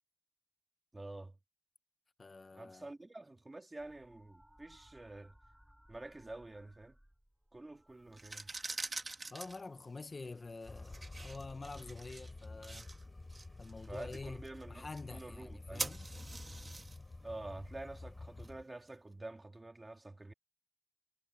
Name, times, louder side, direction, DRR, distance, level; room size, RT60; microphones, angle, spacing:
voice 1, 0.9-1.4 2.5-5.4 5.9-7.0 7.5-8.5 13.8-15.9 17.2-20.3, right 2 dB, 45° right, 2.6 m, -48 dB
voice 2, 2.2-2.9 9.3-12.9 13.6-14.4 14.7-16.1, left 3 dB, 80° left, 1.0 m, -47 dB
sound 1, 3.8-9.6 10.8-11.3 13.0-13.2, equal, 10° right, 3.7 m, -65 dB
sound 2, 8.1-18.9, right 3 dB, 65° right, 2.0 m, -47 dB
sound 3, 10.6-18.6, left 2 dB, 55° left, 4.5 m, -50 dB
wide cardioid pair, 65°, 0 cm